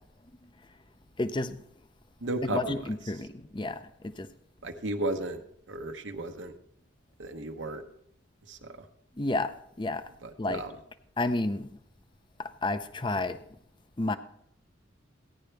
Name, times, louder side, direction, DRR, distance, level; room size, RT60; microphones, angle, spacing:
voice 1, 1.2-1.6 2.4-4.3 9.2-10.0 10.4-10.6 11.2-11.8 12.4-13.4 14.0-14.2, left 2 dB, 25° left, 12 dB, 0.5 m, -31 dB
voice 2, 2.2-2.8 4.6-5.4 5.7-6.5 7.2-7.8 8.5-8.8 10.2-10.7, right 2 dB, 75° right, 5 dB, 1.0 m, -34 dB
16.0 x 10.0 x 3.3 m, 0.71 s
head